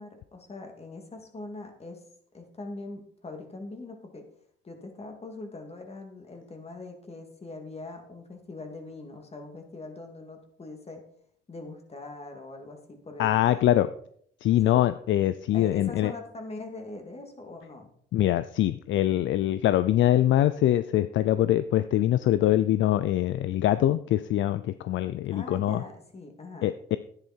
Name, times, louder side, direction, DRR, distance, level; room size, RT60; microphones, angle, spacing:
voice 1, 0.0-2.0 2.3-4.2 4.6-11.0 11.5-13.9 14.6-14.9 15.5-17.9 25.3-26.7, left 2 dB, 30° left, 4 dB, 2.7 m, -42 dB
voice 2, 13.2-13.9 14.4-16.1 18.1-25.8 26.6-27.0, left 13 dB, 75° left, 13 dB, 0.5 m, -23 dB
10.5 x 10.0 x 4.5 m, 0.63 s
cardioid pair, 90°, 20 cm